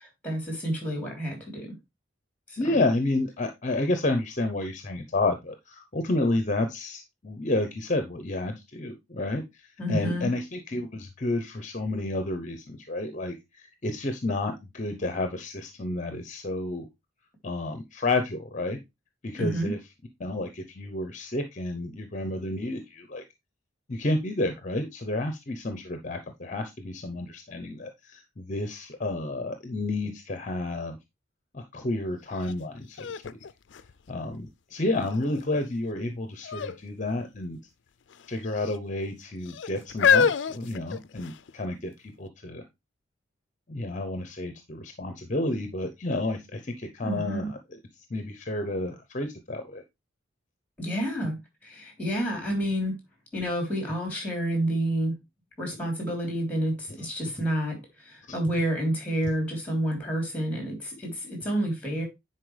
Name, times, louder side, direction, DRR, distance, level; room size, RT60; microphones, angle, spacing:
voice 1, 0.2-1.7 2.5-2.6 9.8-10.3 19.4-19.7 47.0-47.5 50.8-53.0 53.3-55.1 55.6-62.1, right 1 dB, 5° left, 3.2 m, -29 dB
voice 2, 2.6-16.9 17.4-18.8 19.2-19.8 20.2-23.2 23.9-31.0 31.5-33.4 34.1-37.6 38.3-42.7 43.7-47.8 48.1-49.8 58.3-58.4, left 2 dB, 40° left, 0.8 m, -30 dB
sound 1, 32.4-32.5 33.0-34.5 35.1-35.6 36.4-36.8 37.1-37.2 38.1-38.8 39.5-41.5 42.3-42.4, left 6 dB, 65° left, 0.4 m, -26 dB
9.8 x 4.4 x 3.2 m
head